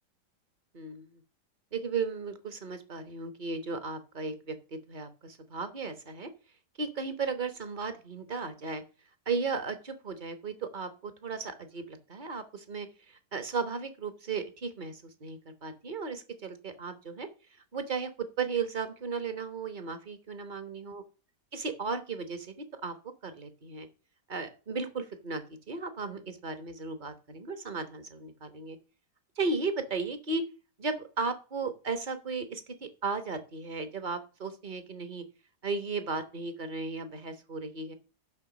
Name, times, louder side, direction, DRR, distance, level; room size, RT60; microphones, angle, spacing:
voice 1, 0.7-1.2 1.7-4.5 4.9-6.3 6.8-8.8 9.3-17.3 17.7-18.1 18.4-21.0 21.5-22.5 22.8-22.9 23.2-23.9 24.3-28.8 29.4-30.4 30.8-35.2 35.6-37.9, right 4 dB, 30° right, 9 dB, 1.2 m, -35 dB
7.3 x 5.7 x 6.9 m, 0.34 s
omnidirectional pair, 1.8 m